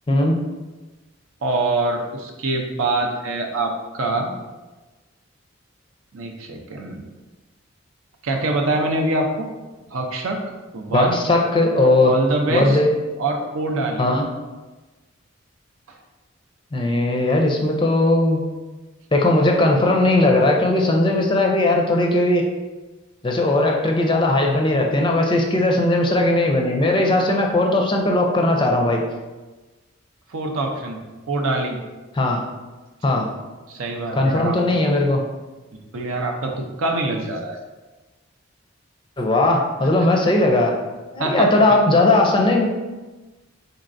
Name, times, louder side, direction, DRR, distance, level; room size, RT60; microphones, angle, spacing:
voice 1, 0.1-0.4 10.9-12.1 12.5-12.9 14.0-14.3 16.7-18.4 19.1-22.5 23.2-29.0 32.2-32.4 33.0-33.3 34.1-35.2 39.2-40.7 41.1-42.7, left 2 dB, 25° left, 1 dB, 0.4 m, -18 dB
voice 2, 1.4-4.3 6.1-7.0 8.2-9.5 9.9-10.4 10.7-11.2 12.0-12.8 13.2-14.0 15.9-16.0 30.3-31.0 31.3-31.8 33.7-34.6 35.9-37.6 41.2-41.5, right 2 dB, 80° right, 3 dB, 0.6 m, -24 dB
4.4 x 4.0 x 2.6 m, 1.2 s
head